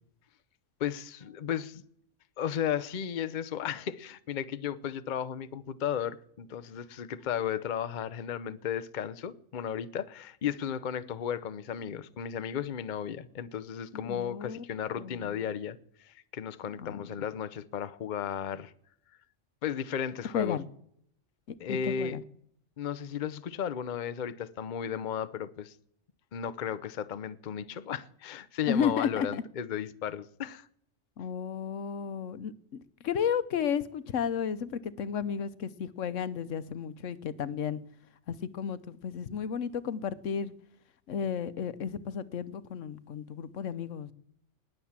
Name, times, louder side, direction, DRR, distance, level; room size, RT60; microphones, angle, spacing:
voice 1, 0.8-1.8 2.4-18.7 19.6-20.6 21.6-22.2 22.8-25.7 26.3-30.7, left 8 dB, 45° left, 0.8 m, -34 dB
voice 2, 13.9-14.6 14.9-15.4 16.8-17.1 20.3-20.7 21.5-22.2 28.7-29.4 31.2-32.5 33.0-37.8 38.3-40.5 41.1-44.1, left 7 dB, 85° left, 1.2 m, -33 dB
19.5 x 7.9 x 7.3 m
omnidirectional pair, 1.3 m